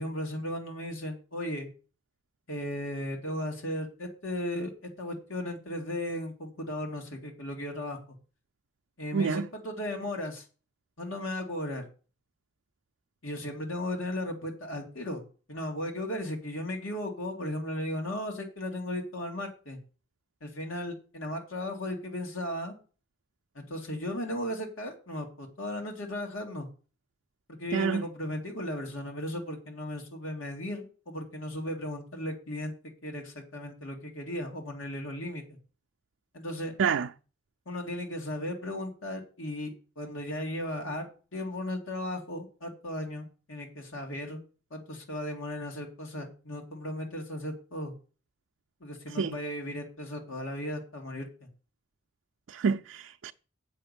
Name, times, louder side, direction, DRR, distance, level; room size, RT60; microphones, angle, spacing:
voice 1, 0.0-1.7 2.5-4.7 5.0-8.0 9.0-10.4 11.0-11.9 13.2-15.2 15.5-19.8 20.4-22.8 23.5-26.7 27.6-32.7 33.0-35.6 36.3-36.7 37.7-44.4 44.7-47.9 48.8-51.5, left 1 dB, 85° left, 2.5 m, -36 dB
voice 2, 9.1-9.5 27.7-28.1 36.8-37.1 49.1-49.4 52.5-53.3, right 6 dB, 75° right, 0.4 m, -28 dB
8.0 x 6.5 x 6.9 m
head